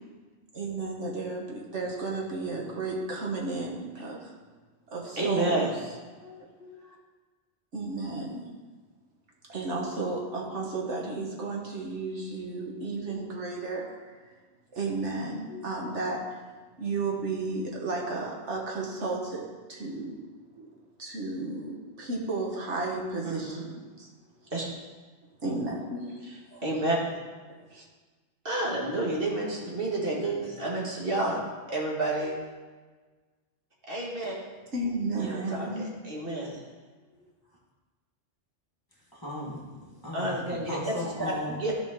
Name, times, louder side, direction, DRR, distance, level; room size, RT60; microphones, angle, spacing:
voice 1, 0.5-4.3 4.9-5.6 7.7-8.4 9.5-14.2 14.7-16.4 16.8-20.1 20.5-20.7 21.0-21.7 22.0-23.6 24.0-24.1 25.4-26.2 27.7-27.8 28.6-28.7 34.7-35.8, right 3 dB, 75° right, -2 dB, 1.6 m, -33 dB
voice 2, 5.2-5.7 6.2-6.9 13.1-13.5 15.5-15.7 23.2-23.6 24.5-24.7 26.5-27.0 28.4-31.4 31.7-32.4 33.9-34.3 35.2-36.6 40.1-41.3 41.6-41.7, right 2 dB, 50° right, -3 dB, 2.0 m, -30 dB
voice 3, 39.1-41.6, left 1 dB, 20° left, -4 dB, 1.4 m, -37 dB
14.5 x 5.2 x 3.7 m, 1.4 s
omnidirectional pair, 1.2 m